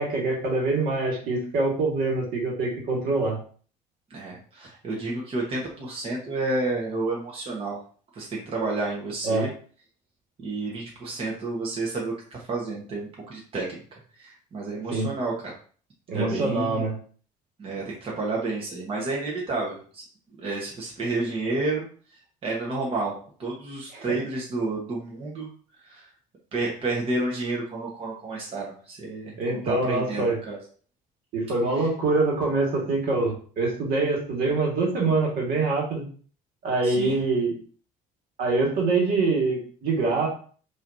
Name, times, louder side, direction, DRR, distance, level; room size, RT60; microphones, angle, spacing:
voice 1, 0.0-3.4 9.2-9.5 14.9-15.1 16.1-17.0 23.9-24.1 29.4-30.4 31.3-36.0 36.6-37.6 38.4-40.3, right 3 dB, 65° right, -1 dB, 1.8 m, -24 dB
voice 2, 4.1-7.8 8.1-9.5 10.4-13.8 14.2-15.5 16.1-16.8 17.6-20.0 20.4-21.8 22.4-25.5 25.8-26.1 26.5-30.6 31.8-31.9 36.8-37.1, right 3 dB, 35° right, -3 dB, 1.3 m, -30 dB
5.7 x 3.1 x 2.7 m, 0.43 s
cardioid pair, 135°, 17 cm